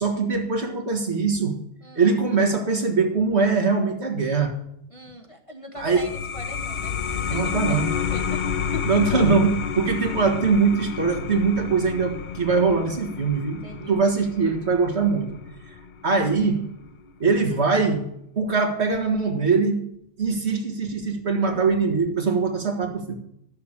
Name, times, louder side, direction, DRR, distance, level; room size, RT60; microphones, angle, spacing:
voice 1, 0.0-1.6 2.0-4.6 5.8-6.1 7.3-7.9 8.9-15.4 16.0-16.6 17.2-18.0 18.4-19.8 20.2-23.1, right 4 dB, 50° right, 4 dB, 2.1 m, -22 dB
voice 2, 4.9-7.0 7.3-9.0 13.6-14.0, left 1 dB, 25° left, 3 dB, 1.0 m, -41 dB
sound 1, 5.8-16.9, left 7 dB, 50° left, 0.6 m, -30 dB
12.5 x 6.8 x 7.4 m, 0.77 s
omnidirectional pair, 1.5 m